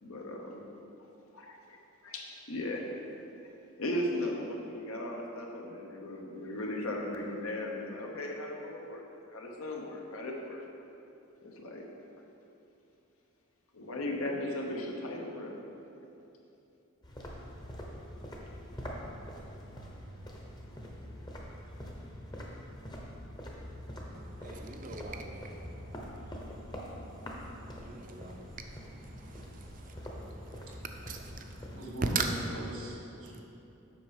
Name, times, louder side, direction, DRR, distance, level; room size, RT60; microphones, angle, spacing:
voice 1, 0.0-0.6 1.3-1.8 2.0-2.8 3.8-9.0 9.3-10.7 11.4-11.9 13.7-15.6, left 1 dB, 75° left, 0 dB, 1.1 m, -37 dB
sound 1, 17.0-31.8, equal, 20° left, 0.8 m, -44 dB
voice 2, 24.1-25.6 26.4-26.5 27.8-28.7 29.1-29.6 31.1-31.5 32.1-32.3, right 6 dB, 40° right, 4 dB, 0.6 m, -39 dB
voice 3, 31.7-33.4, right 1 dB, 80° right, -1 dB, 1.5 m, -41 dB
7.5 x 6.2 x 5.1 m, 2.8 s
head